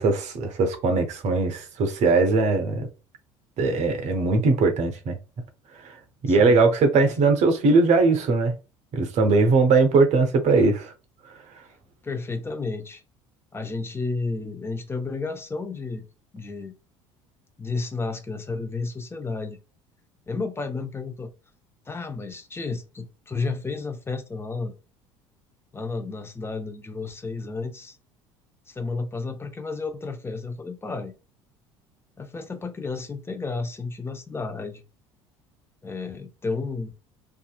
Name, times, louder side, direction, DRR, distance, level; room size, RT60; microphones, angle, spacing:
voice 1, 0.0-2.9 3.6-5.2 6.2-8.5 8.9-10.9, right 3 dB, 45° right, 0.7 m, -20 dB
voice 2, 6.3-6.7 7.0-7.2 12.0-13.0 13.5-16.1 16.3-16.7 17.6-19.6 20.3-21.3 21.9-24.7 25.7-28.0 28.7-31.1 32.2-34.8 35.8-36.9, left 3 dB, 15° left, 0.6 m, -32 dB
2.6 x 2.4 x 2.4 m
figure-of-eight pair, 65°, 16 cm